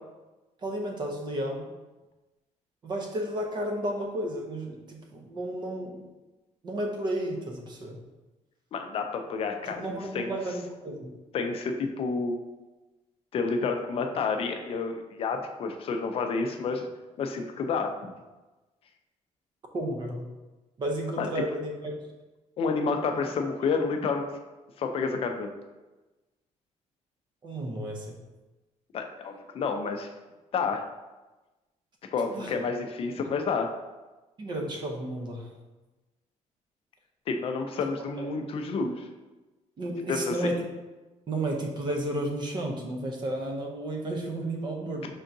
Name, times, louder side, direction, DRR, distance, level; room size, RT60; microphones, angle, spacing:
voice 1, 0.6-1.7 2.8-6.0 6.6-8.0 9.7-11.1 19.7-20.3 20.8-22.0 27.4-28.1 32.3-32.5 34.4-35.5 38.2-38.3 39.8-40.6 41.3-45.1, right 1 dB, 35° right, 2 dB, 0.7 m, -32 dB
voice 2, 8.7-10.3 11.3-12.4 13.3-16.9 17.2-18.1 21.2-21.3 22.6-24.3 24.8-25.5 28.9-30.1 30.5-30.8 32.1-33.7 37.3-39.1 40.1-40.5, left 4 dB, 50° left, 5 dB, 0.5 m, -29 dB
5.6 x 3.6 x 2.6 m, 1.1 s
cardioid pair, 155°, 13 cm